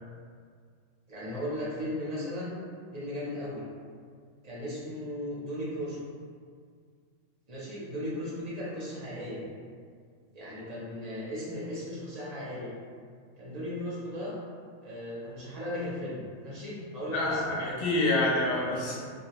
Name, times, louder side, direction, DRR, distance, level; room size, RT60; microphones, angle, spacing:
voice 1, 1.1-2.6 2.9-3.6 4.4-6.0 7.5-9.4 10.3-12.7 13.4-14.4 14.8-17.8, left 1 dB, 45° right, -8 dB, 0.5 m, -36 dB
voice 2, 17.1-19.0, left 2 dB, 60° left, -4 dB, 0.6 m, -27 dB
2.3 x 2.1 x 2.8 m, 2.1 s
omnidirectional pair, 1.3 m